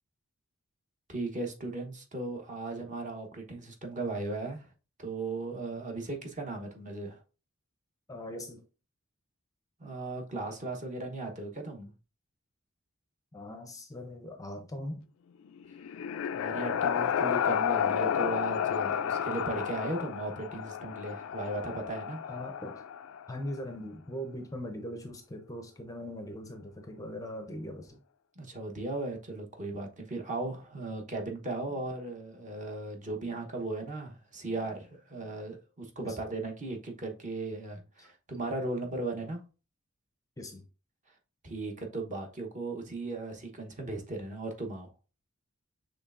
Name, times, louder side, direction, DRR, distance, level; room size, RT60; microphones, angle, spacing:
voice 1, 1.1-4.7 5.0-7.2 9.8-11.9 16.3-22.2 28.4-39.4 41.4-44.9, right 2 dB, 35° right, 1.0 m, -37 dB
voice 2, 8.1-8.6 13.3-15.1 22.3-22.8 23.3-28.0 36.0-36.2 38.0-38.1 40.4-40.6, left 1 dB, 15° left, 0.6 m, -40 dB
sound 1, 15.5-23.4, left 8 dB, 65° left, 0.3 m, -31 dB
6.5 x 3.2 x 2.5 m
head